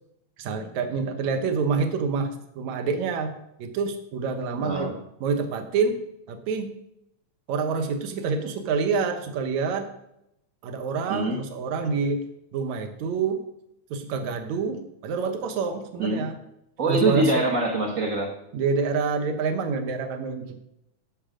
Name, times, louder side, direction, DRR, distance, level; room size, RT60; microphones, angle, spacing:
voice 1, 0.4-3.3 3.6-4.9 5.2-6.0 6.3-6.8 7.5-9.9 10.6-13.4 13.9-16.4 16.9-17.4 18.5-20.6, right 5 dB, 70° right, 6 dB, 2.5 m, -27 dB
voice 2, 4.6-5.0 11.1-11.5 16.0-16.3 16.8-18.3, right 2 dB, 40° right, 1 dB, 1.3 m, -24 dB
17.5 x 7.5 x 5.1 m, 0.82 s
omnidirectional pair, 3.5 m